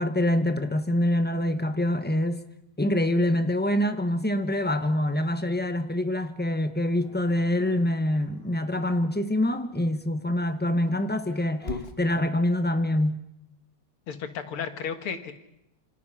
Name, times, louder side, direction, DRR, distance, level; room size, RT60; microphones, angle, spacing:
voice 1, 0.0-2.4 2.8-11.7 12.0-13.2, left 1 dB, 10° left, 0.4 m, -25 dB
Dog, 7.0-8.6 10.2-12.0, left 3 dB, 30° left, 1.6 m, -41 dB
voice 2, 14.1-15.3, left 6 dB, 85° left, 2.6 m, -33 dB
27.0 x 25.5 x 5.8 m
omnidirectional pair, 2.3 m